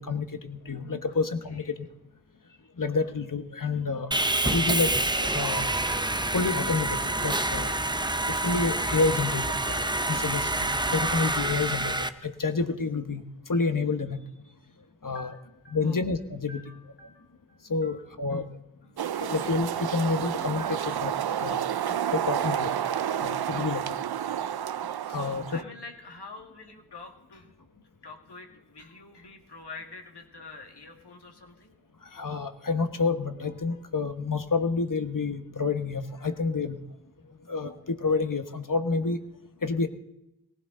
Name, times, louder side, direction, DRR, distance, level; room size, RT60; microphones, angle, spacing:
voice 1, 0.0-1.7 2.8-4.1 4.4-5.8 6.3-7.8 8.3-13.2 13.5-14.2 15.0-15.3 15.7-16.6 17.7-18.4 19.2-21.1 21.4-22.7 23.2-24.0 25.1-25.4 32.1-36.8 37.5-39.2 39.6-39.9, left 4 dB, 55° left, 7 dB, 1.3 m, -29 dB
voice 2, 1.5-1.8 15.1-16.0 16.5-18.5 18.8-19.8 20.6-21.2 23.8-24.5 25.0-27.5 28.0-31.7, left 3 dB, 80° left, 2 dB, 2.1 m, -47 dB
Sawing, 4.1-12.1, right 2 dB, 10° right, 0.7 m, -27 dB
sound 1, 5.3-11.8, left 1 dB, 20° left, 1.5 m, -44 dB
sound 2, 19.0-25.6, right 9 dB, 70° right, 0.5 m, -30 dB
18.5 x 15.5 x 3.9 m, 0.88 s
wide cardioid pair, 45°, 39 cm